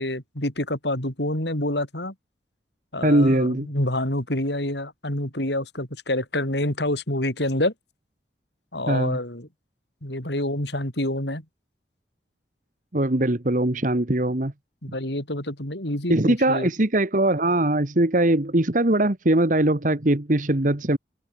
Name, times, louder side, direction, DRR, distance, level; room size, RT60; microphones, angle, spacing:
voice 1, 0.0-2.1 2.9-7.7 8.7-9.5 10.0-11.4 14.8-16.7, left 1 dB, 70° left, 5.9 m, -27 dB
voice 2, 3.0-3.7 8.9-9.2 12.9-14.5 16.1-21.0, right 1 dB, 45° right, 1.5 m, -21 dB
head